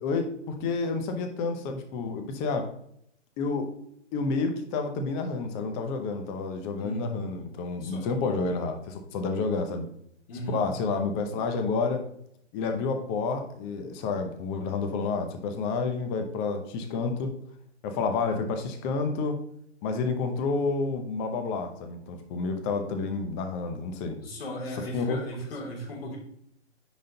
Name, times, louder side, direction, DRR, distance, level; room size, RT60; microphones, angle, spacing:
voice 1, 0.0-2.7 3.4-3.7 4.1-9.9 10.5-12.0 12.5-17.3 17.8-19.4 19.8-24.2 24.9-25.2, left 4 dB, 20° left, 6 dB, 0.8 m, -29 dB
voice 2, 6.8-7.3 7.8-8.1 10.3-10.6 24.2-26.2, right 1 dB, 55° left, -2 dB, 3.2 m, -36 dB
10.0 x 3.8 x 3.9 m, 0.72 s
hypercardioid pair, 145°, 35 cm